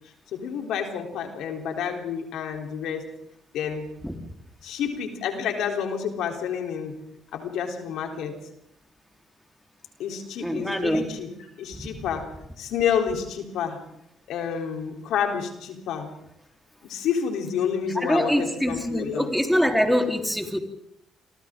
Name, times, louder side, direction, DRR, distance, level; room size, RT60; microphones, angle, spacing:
voice 1, 0.3-3.0 3.5-3.9 4.6-6.9 7.3-8.3 10.0-12.3 12.6-13.8 14.3-16.1 16.8-19.3, left 7 dB, 75° left, 3 dB, 3.7 m, -29 dB
voice 2, 10.4-11.0 18.0-20.6, equal, ahead, 3 dB, 3.9 m, -24 dB
29.0 x 24.0 x 3.9 m, 0.76 s
supercardioid pair, 65°, 0 cm